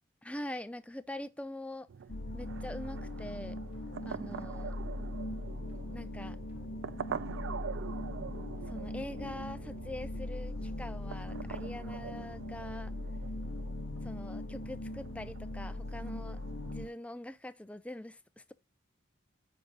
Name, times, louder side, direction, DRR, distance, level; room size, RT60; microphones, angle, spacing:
voice 1, 0.2-1.9 2.3-3.6 4.1-4.7 5.9-6.4 8.7-12.9 14.0-16.4 16.6-18.5, left 1 dB, 5° left, 0.4 m, -43 dB
sound 1, 1.9-16.9, right 6 dB, 75° right, 0.4 m, -45 dB
sound 2, 2.1-16.9, left 1 dB, 65° left, 0.7 m, -40 dB
sound 3, 3.7-15.0, equal, 10° right, 1.4 m, -57 dB
9.3 x 4.7 x 3.9 m
head